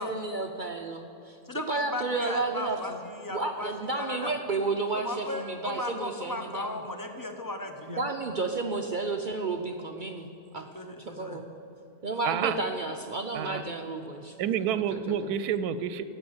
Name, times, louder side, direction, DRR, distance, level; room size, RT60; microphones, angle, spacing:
voice 1, 0.0-3.0 3.3-6.7 7.9-10.7 11.0-11.4 12.0-14.4 14.7-15.3, right 3 dB, 50° right, 4 dB, 0.6 m, -32 dB
voice 2, 1.4-3.7 4.0-4.3 4.9-8.0 10.7-11.4, left 2 dB, 15° left, 5 dB, 0.8 m, -36 dB
voice 3, 12.2-12.6 13.3-13.6 14.4-16.0, right 9 dB, 85° right, 13 dB, 1.1 m, -29 dB
12.5 x 8.0 x 7.9 m, 2.7 s
omnidirectional pair, 1.6 m